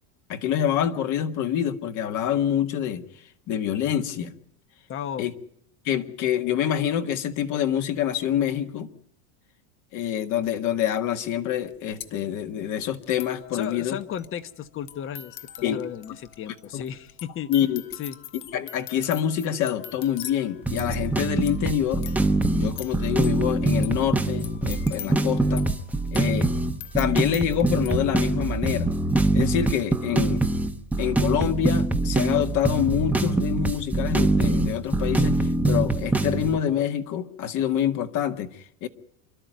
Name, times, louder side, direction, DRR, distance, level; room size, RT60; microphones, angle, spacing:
voice 1, 0.3-3.0 3.5-4.3 5.2-5.3 5.8-8.9 9.9-14.0 15.6-15.9 16.7-16.8 17.5-17.8 18.5-22.0 22.5-25.6 26.1-26.5 26.9-28.9 29.3-30.4 31.0-38.9, left 10 dB, 45° left, 7 dB, 1.7 m, -26 dB
voice 2, 4.9-5.3 13.5-15.4 15.7-17.5 18.0-18.2, left 9 dB, 30° left, 14 dB, 1.1 m, -34 dB
sound 1, 10.4-10.5 11.3-11.4 11.6-27.9, left 12 dB, 70° left, 1.8 m, -43 dB
sound 2, 20.7-36.6, right 2 dB, 5° right, 0.9 m, -24 dB
27.5 x 12.5 x 9.3 m, 0.69 s
supercardioid pair, 135°, 41 cm